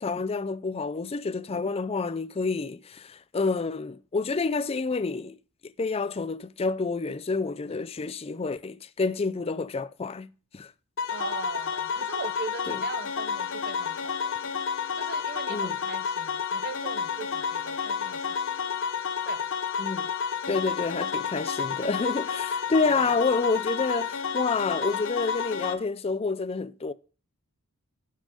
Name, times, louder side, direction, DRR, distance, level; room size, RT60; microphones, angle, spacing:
voice 1, 0.0-5.4 5.6-10.7 12.7-12.8 15.5-15.8 19.8-20.1 20.5-26.9, left 4 dB, 25° left, 0.4 m, -29 dB
sound 1, 11.0-25.7, left 6 dB, 60° left, 0.9 m, -30 dB
voice 2, 11.1-14.4 14.9-18.5 19.2-19.5 22.8-23.3 24.9-25.0, right 4 dB, 45° right, 0.7 m, -39 dB
11.5 x 5.6 x 5.1 m
head